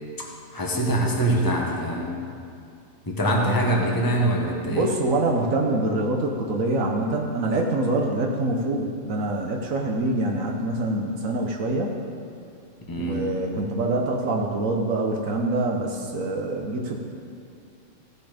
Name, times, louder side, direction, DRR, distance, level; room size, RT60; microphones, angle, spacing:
voice 1, 0.5-2.1 3.1-4.9 12.9-13.2, right 1 dB, 15° left, -1 dB, 1.3 m, -23 dB
voice 2, 3.2-4.0 4.7-11.9 13.0-17.0, right 2 dB, 75° right, 1 dB, 1.4 m, -25 dB
16.0 x 6.9 x 5.1 m, 2.4 s
omnidirectional pair, 1.4 m